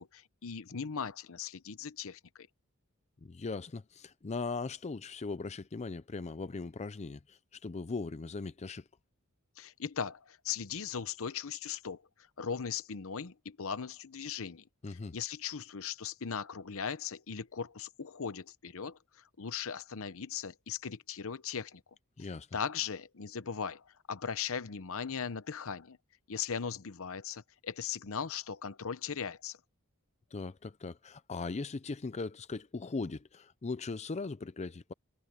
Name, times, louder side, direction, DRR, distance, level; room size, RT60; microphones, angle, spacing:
voice 1, 0.0-2.2 9.6-12.0 12.4-14.6 14.9-21.8 22.2-26.0 26.3-29.6, left 7 dB, 65° left, 0.8 m, -38 dB
voice 2, 3.2-8.8 14.8-15.1 22.2-22.5 30.3-34.9, left 3 dB, 30° left, 0.5 m, -39 dB
head